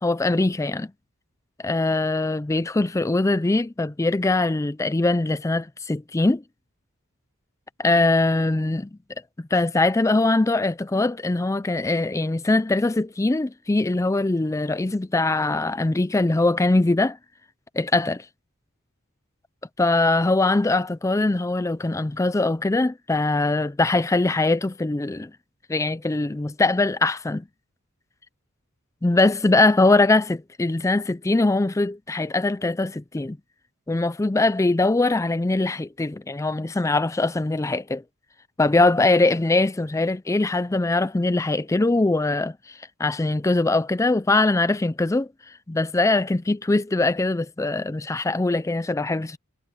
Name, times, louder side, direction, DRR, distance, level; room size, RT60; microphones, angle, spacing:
voice 1, 0.0-0.9 1.6-6.4 7.8-8.8 9.5-17.2 17.8-18.3 19.8-25.3 25.7-27.4 29.0-33.4 33.9-38.0 38.6-45.3 45.7-49.4, left 2 dB, 15° left, 0.4 m, -22 dB
head